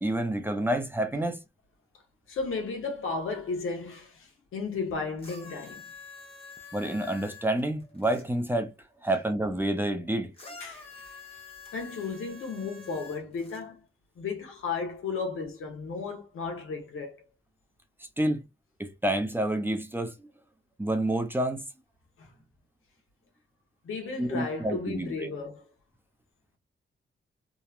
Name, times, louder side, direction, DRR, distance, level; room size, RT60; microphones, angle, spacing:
voice 1, 0.0-1.4 6.7-8.7 9.0-10.3 18.2-18.4 18.8-20.3 20.8-21.6 24.2-25.3, right 1 dB, 10° right, 0.5 m, -28 dB
voice 2, 2.3-5.8 10.6-11.2 11.7-13.8 14.2-17.2 22.2-22.3 23.8-25.6, left 4 dB, 90° left, 0.9 m, -34 dB
sound 1, 5.2-8.2 10.3-13.6 14.5-14.6, left 4 dB, 30° left, 0.9 m, -47 dB
2.9 x 2.1 x 2.3 m
cardioid pair, 95°, 21 cm